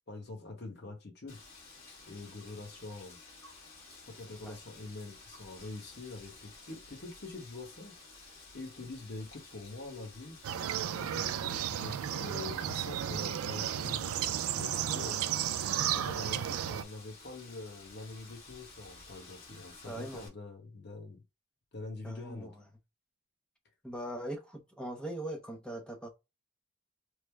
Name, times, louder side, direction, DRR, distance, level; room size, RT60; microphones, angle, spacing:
voice 1, 0.1-1.4 2.1-3.2 4.1-10.4 10.9-15.2 15.8-21.2 21.7-22.5, left 3 dB, 50° left, 1.0 m, -45 dB
Wind, 1.3-20.3, left 3 dB, 70° left, 1.5 m, -54 dB
sound 1, 10.4-16.8, right 10 dB, 75° right, 0.3 m, -33 dB
voice 2, 19.9-20.3 22.0-22.6 23.8-26.1, right 1 dB, 5° left, 0.5 m, -41 dB
3.2 x 2.1 x 3.3 m
head